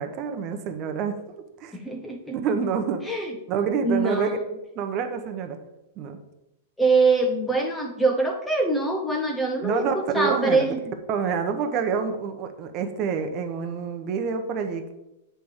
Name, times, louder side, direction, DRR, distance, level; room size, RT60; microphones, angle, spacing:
voice 1, 0.0-1.8 2.1-3.0 3.5-4.4 4.7-5.6 6.0-6.2 9.6-10.6 11.1-14.9, right 6 dB, 30° right, 6 dB, 0.8 m, -27 dB
voice 2, 1.7-2.4 3.1-3.3 3.8-4.4 6.8-10.8, right 3 dB, 5° left, 3 dB, 0.5 m, -23 dB
8.6 x 3.4 x 6.4 m, 0.92 s
supercardioid pair, 165°, 0 cm